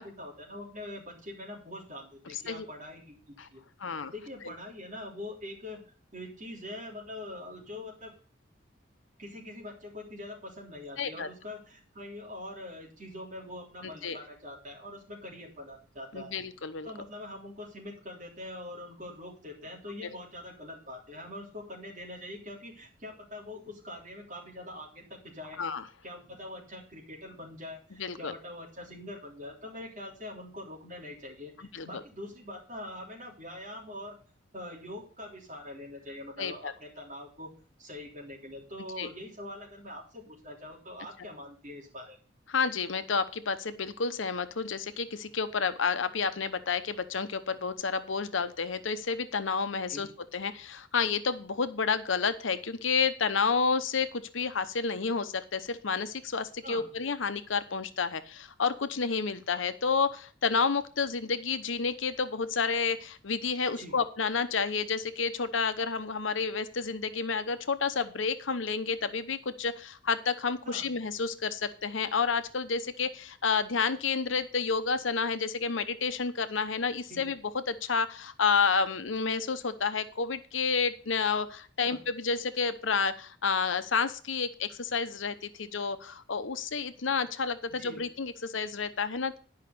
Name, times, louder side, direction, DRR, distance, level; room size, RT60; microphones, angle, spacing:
voice 1, 0.0-5.8 6.1-8.1 9.2-16.3 16.8-25.6 26.0-34.2 34.5-37.5 37.8-42.2 49.9-50.1 56.6-56.9 63.7-64.0 70.6-70.9 77.1-77.3 81.8-82.0 87.7-88.0, left 1 dB, 40° right, -2 dB, 3.6 m, -43 dB
voice 2, 3.8-4.1 11.0-11.3 13.8-14.2 16.1-16.9 25.6-25.8 28.0-28.3 31.7-31.9 36.4-36.7 39.0-39.1 42.5-50.1 50.3-77.4 77.7-89.4, left 5 dB, 90° left, 11 dB, 0.9 m, -30 dB
10.5 x 5.6 x 6.8 m, 0.40 s
head